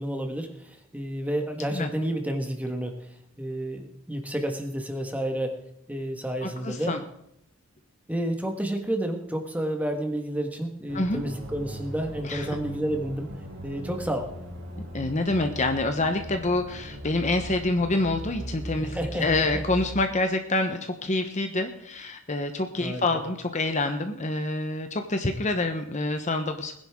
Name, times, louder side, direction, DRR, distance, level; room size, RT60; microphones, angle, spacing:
voice 1, 0.0-5.6 5.9-6.9 8.1-13.3 13.6-14.3 18.8-19.6 22.8-23.0, right 1 dB, 5° right, 4 dB, 1.5 m, -30 dB
voice 2, 6.4-7.0 10.9-11.2 12.2-12.6 14.9-26.7, left 2 dB, 35° left, 6 dB, 0.9 m, -27 dB
sound 1, 10.9-20.0, right 1 dB, 50° right, 3.6 m, -39 dB
20.5 x 10.5 x 3.7 m, 0.75 s
head